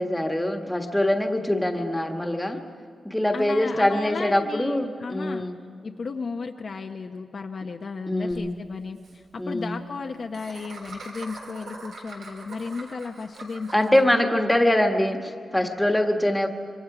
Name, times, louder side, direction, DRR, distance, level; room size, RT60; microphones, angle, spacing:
voice 1, 0.0-2.6 3.0-5.5 8.1-8.5 9.4-9.7 13.7-16.5, left 1 dB, 5° left, 4 dB, 1.4 m, -23 dB
voice 2, 3.3-5.4 5.8-14.2, left 4 dB, 45° left, 4 dB, 0.8 m, -34 dB
Laughter, 8.3-8.4 8.7-8.8 9.0-9.2 10.3-14.0, right 3 dB, 90° right, 3.8 m, -42 dB
25.5 x 24.0 x 4.9 m, 2.1 s
wide cardioid pair, 145°, 0 cm